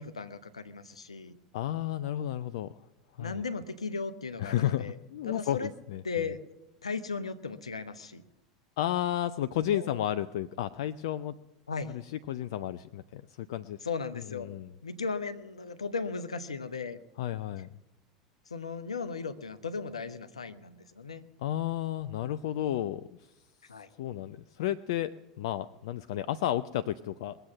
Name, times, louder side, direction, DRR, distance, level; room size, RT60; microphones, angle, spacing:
voice 1, 0.0-1.4 3.2-5.0 5.3-5.7 6.0-6.4 6.8-8.2 9.7-10.0 11.7-11.9 13.8-14.5 14.8-17.0 18.5-21.2 23.6-23.9, left 4 dB, 80° left, 10 dB, 0.9 m, -36 dB
voice 2, 1.5-2.7 3.2-3.4 4.4-6.0 8.8-11.4 12.3-13.8 14.5-14.7 17.2-17.7 21.4-23.1 24.0-27.4, left 12 dB, 60° left, 13 dB, 0.4 m, -32 dB
21.0 x 7.9 x 7.2 m, 0.99 s
figure-of-eight pair, 80°, 3 cm